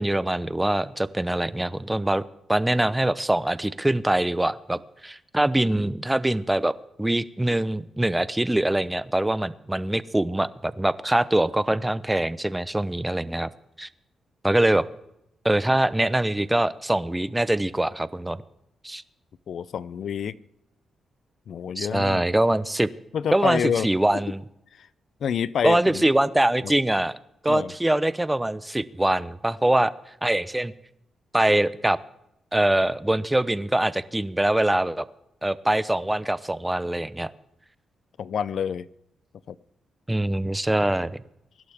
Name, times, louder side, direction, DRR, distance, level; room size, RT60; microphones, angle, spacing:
voice 1, 0.0-6.7 7.0-13.5 13.8-13.9 14.4-14.9 15.4-18.4 18.8-19.0 21.8-22.9 23.3-24.4 25.6-27.2 27.4-29.9 30.2-30.7 31.3-32.0 32.5-35.1 35.4-37.3 40.1-41.1, right 1 dB, 10° right, 16 dB, 0.8 m, -23 dB
voice 2, 19.5-20.4 21.5-22.2 23.1-23.9 24.8-24.9 25.2-26.1 26.6-26.7 27.5-27.7 38.2-38.9 39.5-39.6, left 8 dB, 70° left, 18 dB, 0.6 m, -28 dB
24.0 x 11.5 x 3.6 m, 0.81 s
cardioid pair, 70°, 0 cm